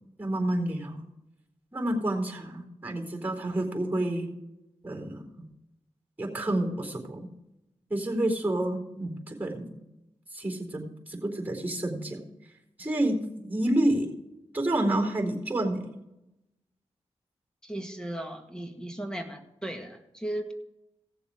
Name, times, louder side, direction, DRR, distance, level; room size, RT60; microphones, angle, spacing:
voice 1, 0.2-1.0 1.7-4.3 4.8-5.2 6.2-7.3 7.9-9.8 10.3-12.2 12.8-14.1 14.5-15.9, right 1 dB, 15° right, 2 dB, 4.1 m, -29 dB
voice 2, 17.6-20.5, right 1 dB, 5° left, 4 dB, 1.8 m, -36 dB
16.5 x 7.0 x 5.1 m, 0.88 s
cardioid pair, 50°, 12 cm